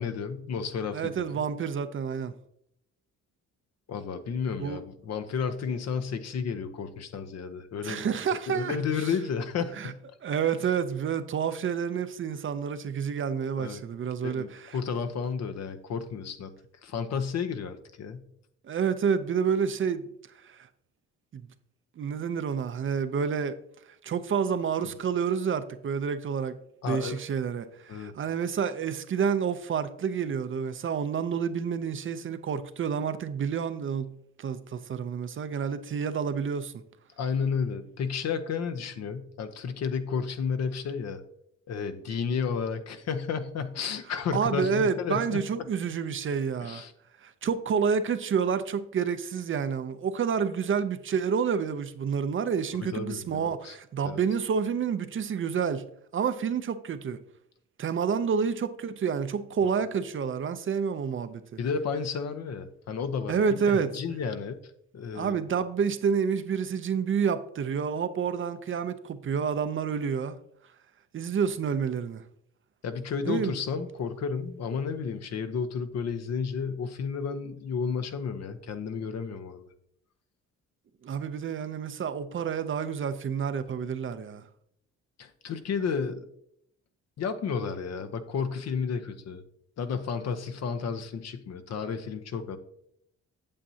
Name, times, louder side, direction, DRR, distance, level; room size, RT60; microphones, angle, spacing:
voice 1, 0.0-1.4 3.9-8.1 8.5-10.0 13.6-13.8 14.2-16.5 16.8-18.2 24.8-24.9 26.8-27.2 27.9-28.1 37.2-41.2 41.7-45.7 46.6-46.9 52.8-53.8 54.0-54.2 61.6-64.5 64.9-65.4 72.8-79.7 85.2-86.3 87.2-89.4 89.8-92.6, left 6 dB, 60° left, 0.8 m, -32 dB
voice 2, 0.9-2.3 4.6-4.8 7.8-9.1 9.8-9.9 10.2-14.8 18.6-20.1 20.4-20.7 21.3-21.4 22.0-23.5 24.0-26.6 26.9-34.1 34.4-36.7 44.3-46.8 47.2-55.8 56.1-57.2 57.8-61.4 63.3-63.9 65.1-70.4 71.1-72.2 73.2-73.6 81.0-84.4, right 6 dB, 45° right, 0.6 m, -29 dB
8.7 x 7.4 x 2.8 m
cardioid pair, 90°, 30 cm